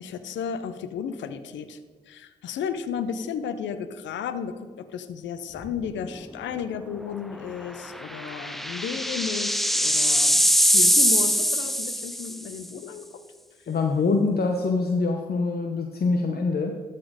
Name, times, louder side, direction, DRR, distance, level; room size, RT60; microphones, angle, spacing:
voice 1, 0.0-1.8 2.1-13.2, left 7 dB, 90° left, 12 dB, 0.5 m, -33 dB
sound 1, 5.6-6.0 6.3-6.4 7.8-12.5, equal, ahead, 0.5 m, -22 dB
voice 2, 13.7-16.7, left 3 dB, 55° left, 3 dB, 0.8 m, -24 dB
13.0 x 4.3 x 4.9 m, 1.5 s
supercardioid pair, 40°, 19 cm